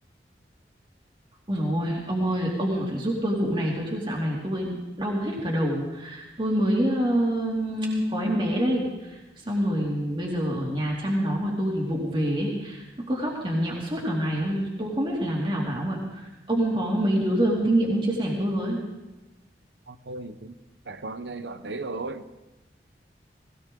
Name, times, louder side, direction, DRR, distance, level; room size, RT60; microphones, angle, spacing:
voice 1, 1.5-18.8, equal, 30° right, 2.7 m, -26 dB
voice 2, 19.9-20.5 20.9-22.4, right 3 dB, 80° right, 0.9 m, -36 dB
19.5 x 17.5 x 3.8 m
head